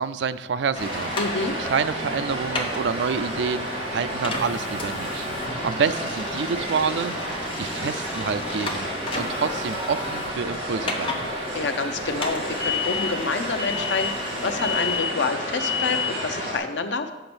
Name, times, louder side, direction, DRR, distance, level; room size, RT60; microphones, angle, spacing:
voice 1, 0.0-1.1 1.6-5.3 5.6-7.2 7.6-8.9 9.1-11.2, right 6 dB, 75° right, 13 dB, 0.4 m, -27 dB
sound 1, 0.7-15.0, left 2 dB, 30° left, 0.9 m, -35 dB
sound 2, 0.7-16.3, left 6 dB, 15° right, 0.8 m, -35 dB
sound 3, 0.7-16.6, right 1 dB, 30° right, 2.3 m, -31 dB
voice 2, 1.2-1.6 11.5-17.1, left 4 dB, 80° left, 7 dB, 0.7 m, -28 dB
6.0 x 5.8 x 7.0 m, 1.2 s
head